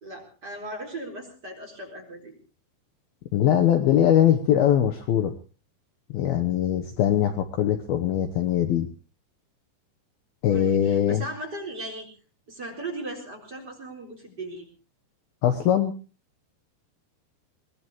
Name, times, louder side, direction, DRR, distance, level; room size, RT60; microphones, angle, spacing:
voice 1, 0.0-2.3 10.5-12.1 12.5-14.7, right 1 dB, 25° right, 3 dB, 4.0 m, -37 dB
voice 2, 3.3-5.3 6.1-8.9 10.4-11.2 15.4-15.9, left 10 dB, 70° left, 7 dB, 2.5 m, -21 dB
22.5 x 20.0 x 3.0 m, 0.35 s
omnidirectional pair, 5.3 m